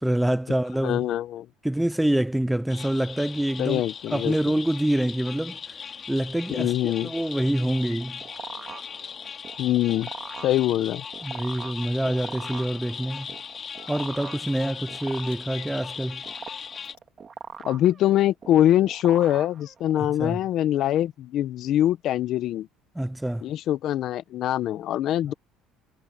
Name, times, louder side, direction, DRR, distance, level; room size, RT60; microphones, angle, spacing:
voice 1, 0.0-1.1 1.6-3.8 4.1-5.6 6.1-8.2 11.2-13.3 13.9-16.2 20.0-20.4 23.0-23.5, right 1 dB, 5° right, 0.5 m, -26 dB
voice 2, 0.8-1.5 3.6-4.3 6.5-7.1 9.6-10.1 10.4-11.0 17.6-22.7 23.4-25.3, left 12 dB, 60° left, 1.2 m, -23 dB
sound 1, 2.7-16.9, left 6 dB, 35° left, 3.5 m, -39 dB
Telephone, 7.3-7.5 7.8-8.1 8.4-9.7 10.0-10.9 12.1-12.3 12.6-13.3 13.8-15.8 16.1-16.2 16.8-17.0, left 20 dB, 90° left, 4.7 m, -54 dB
sound 2, 7.7-20.1, right 6 dB, 35° right, 2.4 m, -42 dB
supercardioid pair, 100°, 0 cm